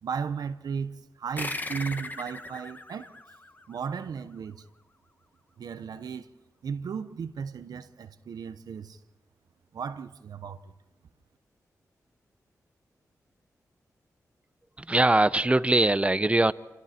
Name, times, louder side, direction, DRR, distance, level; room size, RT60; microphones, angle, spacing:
voice 1, 0.0-3.2 3.7-4.6 5.6-6.3 6.6-9.0 9.7-10.7, right 6 dB, 80° right, 1.0 m, -35 dB
sound 1, 1.4-4.3, left 2 dB, 25° left, 1.5 m, -38 dB
voice 2, 14.8-16.5, right 2 dB, 20° right, 0.8 m, -22 dB
27.5 x 25.0 x 4.4 m
cardioid pair, 55°, 7 cm